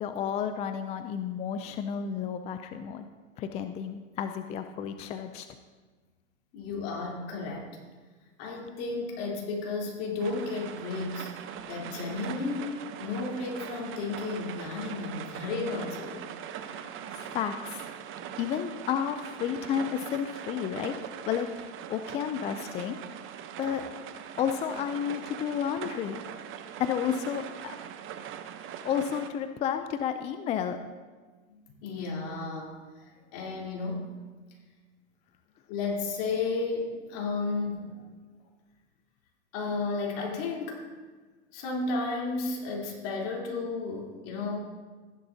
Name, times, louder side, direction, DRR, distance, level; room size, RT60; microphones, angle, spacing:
voice 1, 0.0-3.1 3.4-5.5 16.6-17.9 18.4-21.0 21.3-21.5 21.9-23.0 23.6-23.9 24.4-26.2 26.8-27.8 28.8-30.9, left 8 dB, 20° left, 9 dB, 0.3 m, -31 dB
voice 2, 6.5-7.7 8.4-16.2 31.5-34.1 35.7-37.9 39.5-40.8 41.5-44.6, left 3 dB, 55° left, -2 dB, 3.5 m, -33 dB
sound 1, 10.2-29.3, right 9 dB, 35° right, 0.8 m, -41 dB
15.0 x 11.0 x 2.7 m, 1.4 s
hypercardioid pair, 115°, 37 cm